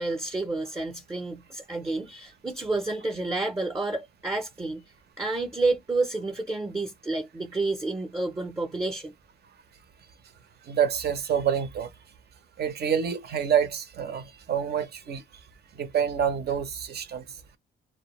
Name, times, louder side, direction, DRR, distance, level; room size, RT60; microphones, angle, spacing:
voice 1, 0.0-9.1, right 2 dB, 15° right, 0.6 m, -30 dB
voice 2, 10.7-11.9 12.6-15.2 15.7-17.2, right 8 dB, 55° right, 0.7 m, -27 dB
2.2 x 2.1 x 3.0 m
cardioid pair, 90°, 20 cm